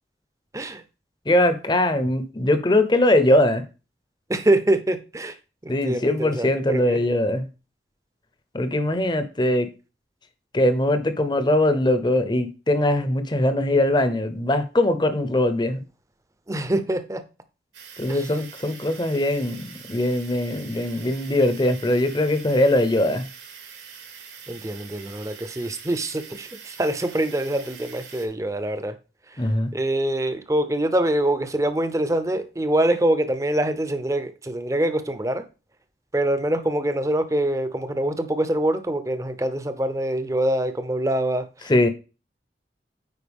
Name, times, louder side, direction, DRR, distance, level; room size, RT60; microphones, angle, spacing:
voice 1, 1.3-3.6 5.7-7.5 8.5-9.7 10.5-15.8 18.0-23.3 29.4-29.7 41.7-41.9, left 1 dB, 25° left, 0.7 m, -21 dB
voice 2, 4.3-5.3 5.6-7.0 16.5-17.2 18.1-18.2 24.5-28.9 29.7-35.4 36.1-41.5, right 1 dB, 20° right, 0.6 m, -24 dB
sound 1, 17.7-28.3, right 7 dB, 80° right, 1.7 m, -44 dB
9.4 x 4.6 x 3.5 m
head